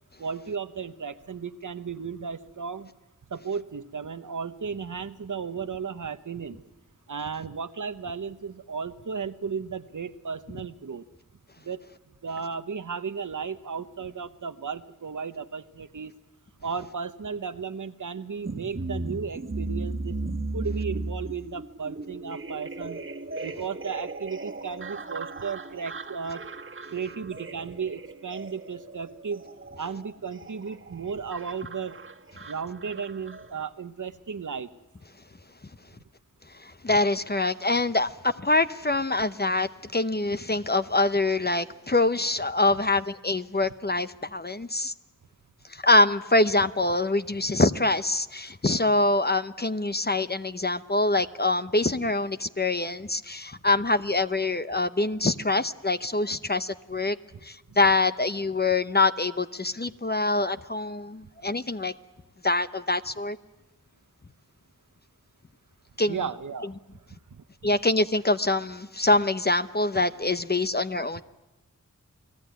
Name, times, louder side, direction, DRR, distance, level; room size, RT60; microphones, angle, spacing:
voice 1, 0.2-2.9 3.3-6.6 7.1-11.0 11.6-11.8 12.2-16.2 16.6-20.2 20.5-23.0 23.4-26.4 26.9-29.4 29.8-32.0 32.5-34.7 66.1-66.8 67.3-67.7, right 6 dB, 75° right, 11 dB, 1.1 m, -34 dB
sound 1, 18.4-33.6, right 2 dB, 40° right, 1.6 m, -37 dB
voice 2, 36.6-44.9 45.7-57.2 57.4-61.9 62.4-63.4 66.0-66.2 67.6-71.2, left 2 dB, 35° left, 11 dB, 0.8 m, -25 dB
29.5 x 19.0 x 9.4 m, 1.1 s
wide cardioid pair, 65°, 31 cm